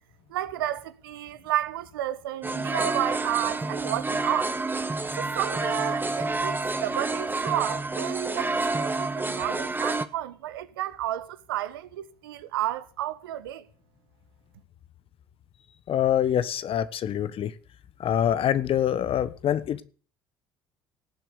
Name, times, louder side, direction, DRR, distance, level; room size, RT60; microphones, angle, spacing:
voice 1, 0.3-4.6 5.2-13.6, right 13 dB, 80° right, 1.0 m, -32 dB
sound 1, 2.4-10.1, right 3 dB, 15° right, 1.4 m, -29 dB
voice 2, 15.9-17.5 18.0-19.8, left 10 dB, 50° left, 1.2 m, -25 dB
18.0 x 7.7 x 6.8 m
hypercardioid pair, 55°, 12 cm